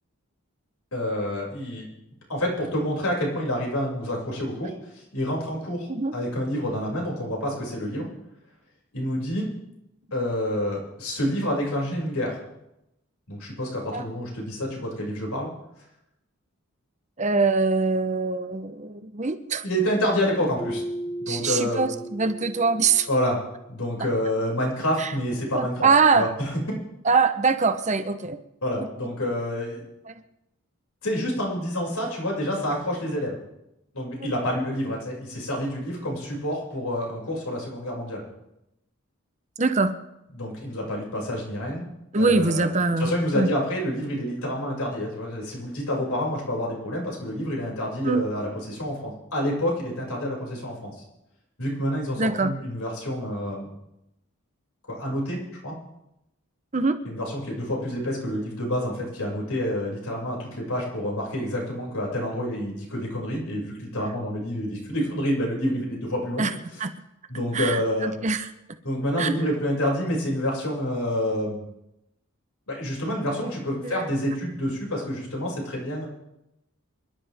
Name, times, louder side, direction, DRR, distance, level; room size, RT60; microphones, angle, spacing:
voice 1, 0.9-1.8 2.3-8.1 8.9-9.5 10.1-12.4 13.3-15.5 19.6-20.8 21.2-21.9 23.1-23.4 23.7-25.9 26.1-26.5 28.6-29.8 31.0-33.4 33.9-38.2 40.4-41.9 42.2-42.7 43.0-51.0 51.6-53.7 54.9-55.4 55.6-55.7 57.0-66.4 67.3-68.1 68.8-71.7 72.7-76.1, equal, 85° left, -3 dB, 6.2 m, -28 dB
voice 2, 17.2-19.6 21.3-23.1 24.0-24.1 25.0-25.1 25.5-26.3 27.0-28.4 30.1-30.2 39.6-39.9 42.1-43.5 48.0-48.3 52.2-52.5 56.7-57.0 66.4-66.5 66.8-66.9 67.5-68.5 69.2-69.3 73.8-74.1, right 4 dB, 30° right, 9 dB, 0.8 m, -23 dB
Keyboard (musical), 20.6-23.4, right 1 dB, 30° left, 3.6 m, -35 dB
27.5 x 11.5 x 3.5 m, 0.88 s
head